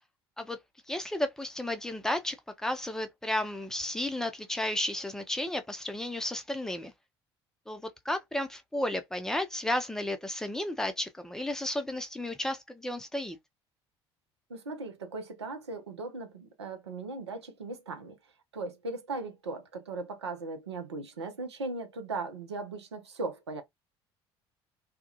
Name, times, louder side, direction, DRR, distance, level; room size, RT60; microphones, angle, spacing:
voice 1, 0.9-6.9 7.7-13.4, left 1 dB, 5° left, 0.5 m, -33 dB
voice 2, 14.5-18.2 18.5-23.6, right 3 dB, 80° right, 0.5 m, -38 dB
2.2 x 2.1 x 2.7 m
figure-of-eight pair, 60°, 14 cm